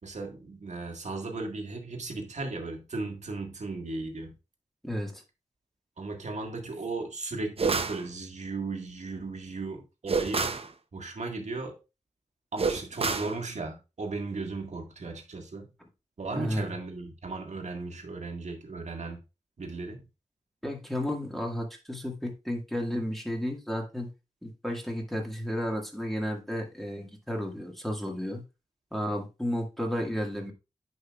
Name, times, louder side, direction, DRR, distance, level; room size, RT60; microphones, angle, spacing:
voice 1, 0.0-4.3 6.0-10.6 10.9-11.8 12.5-15.7 16.2-19.2 19.6-20.1, right 3 dB, 70° right, 1.6 m, -36 dB
voice 2, 4.8-5.2 16.3-16.7 20.6-24.1 24.4-28.4 28.9-30.5, equal, ahead, 1.8 m, -32 dB
Whip Sound, 7.6-8.0 10.1-10.7 12.6-13.4, right 4 dB, 50° right, 0.7 m, -28 dB
9.3 x 5.4 x 2.4 m
wide cardioid pair, 105°, 12 cm